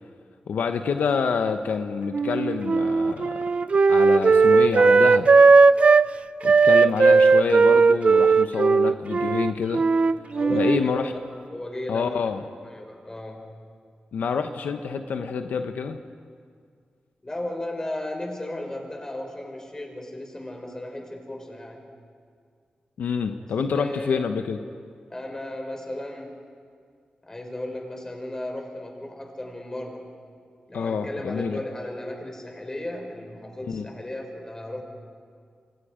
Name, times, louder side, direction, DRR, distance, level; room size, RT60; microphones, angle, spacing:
voice 1, 0.5-3.4 3.9-5.3 6.4-9.9 10.5-11.1 11.9-12.4 14.1-16.0 23.0-24.6 30.7-31.6 33.7-33.9, left 6 dB, 90° left, 7 dB, 1.0 m, -27 dB
Wind instrument woodwind instrument, 2.1-6.1 6.4-10.9, right 4 dB, 45° right, 0.5 m, -17 dB
voice 2, 10.3-11.2 11.5-12.2 12.6-13.5 17.2-21.9 23.7-24.3 25.1-26.3 27.3-30.1 30.7-34.8, left 1 dB, 20° left, 2 dB, 5.3 m, -35 dB
27.0 x 26.0 x 5.1 m, 2.1 s
wide cardioid pair, 90°, 3 cm